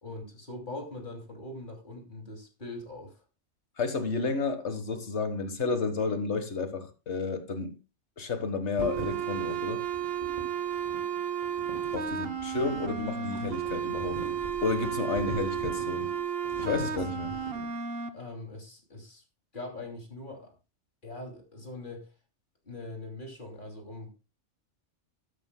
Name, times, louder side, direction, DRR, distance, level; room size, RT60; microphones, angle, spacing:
voice 1, 0.0-3.2 16.9-17.0 18.1-19.2 19.5-20.5 21.0-22.1 22.6-24.1, left 2 dB, 40° left, 2.9 m, -42 dB
voice 2, 3.8-7.8 8.2-9.8 11.9-14.2 14.6-16.1 16.6-17.3, left 4 dB, 65° left, 1.7 m, -31 dB
sound 1, 8.8-17.7, right 3 dB, 30° right, 3.5 m, -43 dB
sound 2, 8.8-18.1, right 8 dB, 55° right, 1.0 m, -33 dB
13.5 x 12.0 x 2.2 m
omnidirectional pair, 1.3 m